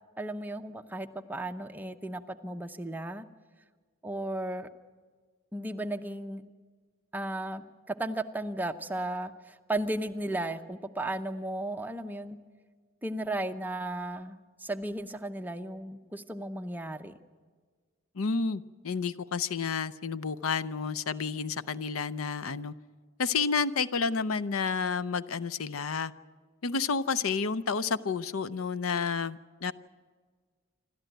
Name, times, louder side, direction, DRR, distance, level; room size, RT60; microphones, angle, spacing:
voice 1, 0.2-3.3 4.0-4.7 5.5-6.5 7.1-12.4 13.0-17.1, right 1 dB, 10° right, 7 dB, 0.8 m, -35 dB
voice 2, 18.1-22.7 23.2-26.1 26.6-29.7, left 5 dB, 80° left, 16 dB, 0.6 m, -30 dB
27.5 x 13.0 x 9.1 m, 1.6 s
head